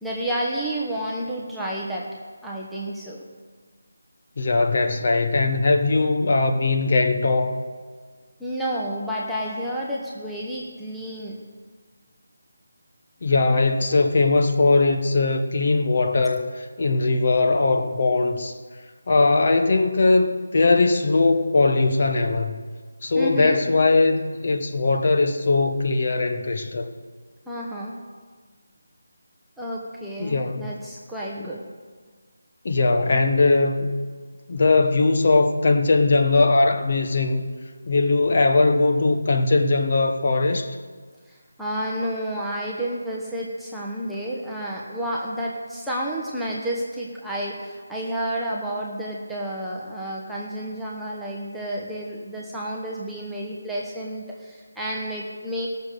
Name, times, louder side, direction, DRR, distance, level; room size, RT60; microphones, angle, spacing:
voice 1, 0.0-2.1 2.4-3.2 8.4-11.4 23.1-23.6 27.5-28.0 29.6-31.6 41.3-55.7, right 1 dB, ahead, -6 dB, 1.0 m, -30 dB
voice 2, 4.4-7.6 13.2-18.5 19.1-22.6 23.0-26.9 30.2-30.7 31.4-31.5 32.6-33.9 34.5-37.5 37.9-40.7, left 3 dB, 40° left, 5 dB, 1.2 m, -20 dB
17.0 x 6.8 x 6.6 m, 1.5 s
figure-of-eight pair, 170°, 0 cm